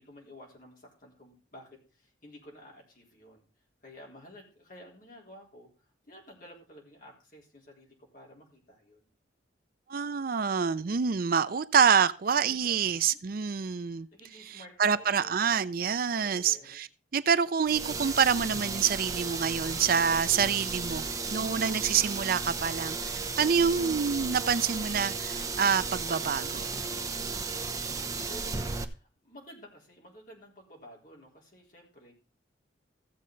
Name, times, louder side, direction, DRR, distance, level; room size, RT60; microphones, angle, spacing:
voice 1, 0.0-3.4 3.8-5.7 6.0-9.1 12.4-13.2 14.1-15.4 16.2-16.8 27.8-32.1, equal, 45° left, 3.7 m, -52 dB
voice 2, 9.9-14.1 14.8-16.9 17.1-21.0 21.3-26.7, right 6 dB, 50° right, 0.4 m, -27 dB
sound 1, 17.7-28.8, right 4 dB, 20° right, 0.7 m, -34 dB
15.0 x 7.5 x 3.9 m
head